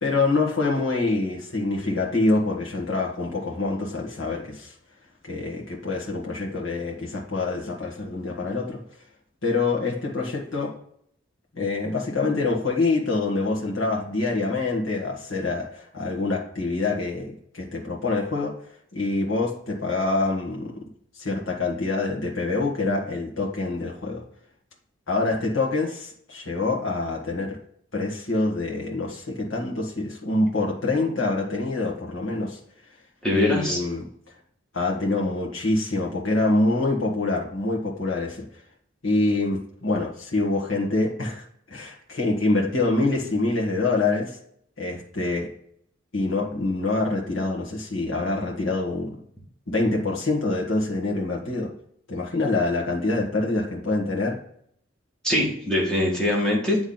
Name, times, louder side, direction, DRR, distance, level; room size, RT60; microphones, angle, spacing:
voice 1, 0.0-4.7 5.2-8.8 9.4-10.7 11.5-18.5 18.9-20.8 21.2-24.2 25.1-27.6 27.9-32.6 33.3-34.1 34.7-38.4 39.0-44.4 44.8-45.5 46.1-49.1 49.7-51.7 52.1-54.4, left 2 dB, 75° left, -2 dB, 1.6 m, -25 dB
voice 2, 33.2-33.8 55.2-56.8, left 1 dB, 5° left, -4 dB, 1.8 m, -22 dB
8.6 x 3.5 x 3.9 m, 0.67 s
head